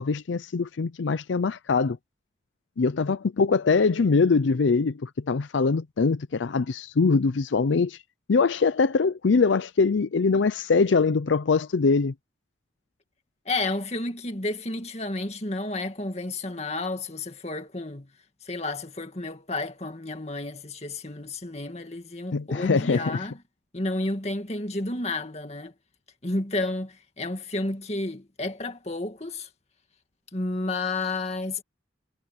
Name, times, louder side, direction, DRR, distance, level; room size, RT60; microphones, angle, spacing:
voice 1, 0.0-2.0 2.8-8.0 8.3-12.1 22.3-23.2, left 4 dB, 85° left, 0.5 m, -23 dB
voice 2, 13.5-18.1 18.4-23.4 23.7-25.7 26.2-29.5 30.3-31.6, left 2 dB, 35° left, 2.2 m, -31 dB
head